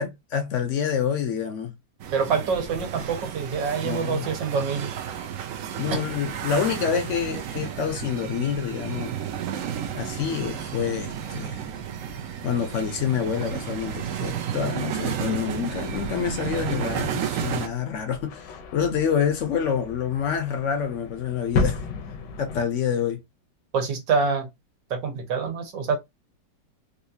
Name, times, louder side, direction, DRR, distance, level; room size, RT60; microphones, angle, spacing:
voice 1, 0.0-1.7 3.8-4.3 5.8-9.1 9.9-11.6 12.4-21.8 22.4-23.2, left 7 dB, 65° left, 0.8 m, -27 dB
sound 1, 2.0-17.7, right 9 dB, 65° right, 0.8 m, -32 dB
voice 2, 2.1-4.9 23.7-24.5 24.9-26.0, right 5 dB, 85° right, 1.7 m, -26 dB
sound 2, 9.9-22.6, left 4 dB, 80° left, 1.4 m, -36 dB
4.1 x 2.4 x 2.7 m
omnidirectional pair, 1.9 m